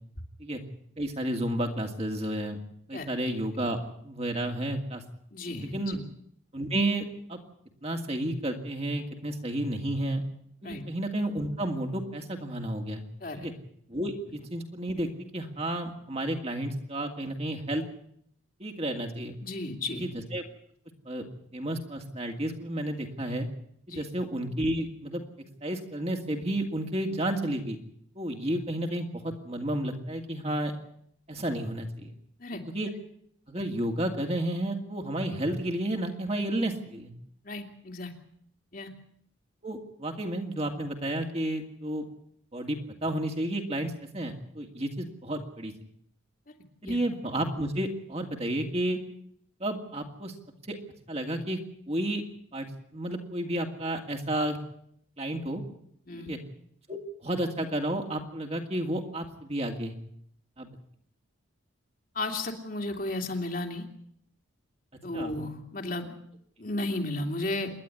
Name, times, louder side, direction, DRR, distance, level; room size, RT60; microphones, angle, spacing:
voice 1, 1.0-2.6 2.9-5.0 5.6-6.0 6.5-7.4 7.8-10.2 10.6-13.0 13.4-13.5 13.9-17.8 18.6-19.3 20.0-20.4 21.1-21.2 21.5-23.5 23.9-25.2 25.6-27.8 28.2-30.7 31.3-32.1 32.7-32.9 33.5-37.1 39.6-42.0 42.5-45.7 46.8-49.0 49.6-50.3 50.7-50.8 51.1-51.6 51.9-52.2 52.5-52.7 52.9-54.6 55.2-55.6 56.2-56.4 56.9-59.9 60.6-60.7 65.1-65.3, right 1 dB, 30° right, 3 dB, 2.4 m, -31 dB
voice 2, 5.3-6.0 10.6-10.8 13.2-13.5 19.4-20.0 23.9-24.0 32.4-32.6 37.4-38.1 38.7-38.9 46.8-47.0 56.1-56.3 62.1-63.9 65.0-66.1 66.6-67.7, left 2 dB, 40° left, 4 dB, 2.6 m, -34 dB
27.5 x 11.5 x 9.9 m, 0.68 s
head